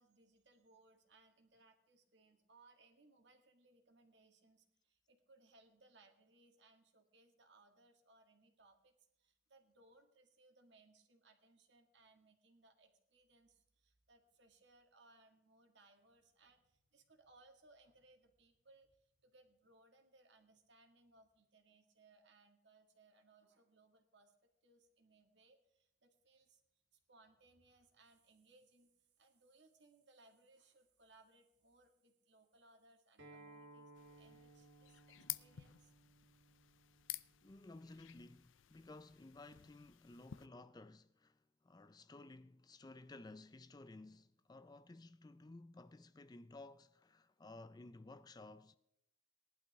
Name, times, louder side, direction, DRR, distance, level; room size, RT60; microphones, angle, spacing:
voice 1, 0.0-24.3 24.6-26.6 26.9-35.9, right 2 dB, 60° right, 2.0 m, -68 dB
Acoustic guitar, 33.2-38.4, right 2 dB, 85° right, 3.1 m, -62 dB
sound 1, 34.0-40.5, left 15 dB, 85° left, 0.5 m, -52 dB
voice 2, 37.4-48.8, left 2 dB, 20° left, 0.4 m, -56 dB
19.0 x 11.5 x 3.5 m
head